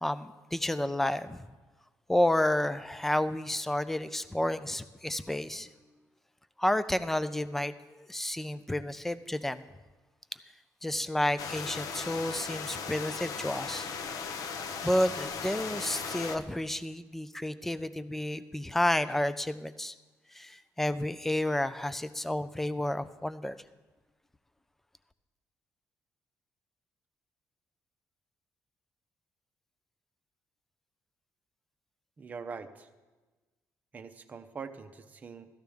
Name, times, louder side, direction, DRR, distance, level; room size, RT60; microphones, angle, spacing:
voice 1, 0.0-1.4 2.1-5.7 6.6-9.6 10.8-13.9 14.8-19.9 20.3-23.6, left 1 dB, 5° left, 13 dB, 0.4 m, -30 dB
sound 1, 11.4-16.4, left 5 dB, 65° left, 0.8 m, -37 dB
voice 2, 32.2-32.9 33.9-35.5, right 5 dB, 25° right, 6 dB, 0.7 m, -43 dB
17.5 x 13.5 x 3.5 m, 1.2 s
cardioid pair, 175°, 6 cm